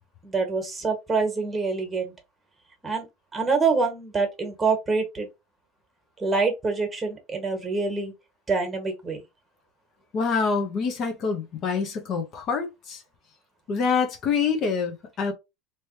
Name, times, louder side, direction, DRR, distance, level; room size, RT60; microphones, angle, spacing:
voice 1, 0.2-2.1 2.8-3.1 3.3-5.3 6.2-8.1 8.5-9.2, right 4 dB, 15° right, 1.6 m, -26 dB
voice 2, 10.1-13.0 13.7-15.3, left 5 dB, 45° left, 1.0 m, -26 dB
3.1 x 3.1 x 2.8 m
supercardioid pair, 105°, 0 cm